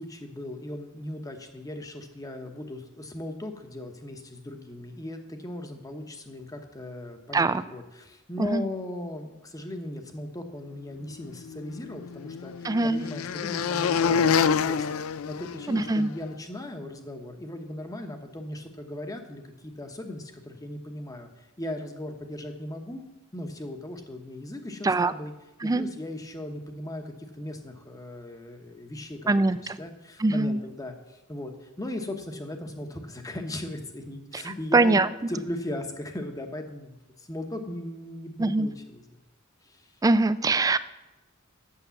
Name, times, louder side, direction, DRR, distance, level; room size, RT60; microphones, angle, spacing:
voice 1, 0.0-23.0 23.3-25.3 25.6-35.0 35.3-39.0 39.6-39.9, left 1 dB, 15° left, 5 dB, 0.9 m, -38 dB
sound 1, 11.5-16.1, left 6 dB, 75° left, 0.4 m, -27 dB
voice 2, 12.6-13.1 15.7-16.1 24.8-25.1 25.6-25.8 29.3-29.8 30.2-30.6 34.3-34.4 34.7-35.1 38.4-38.7 40.0-40.8, right 3 dB, 15° right, 14 dB, 0.3 m, -23 dB
8.4 x 6.7 x 7.0 m, 1.0 s
head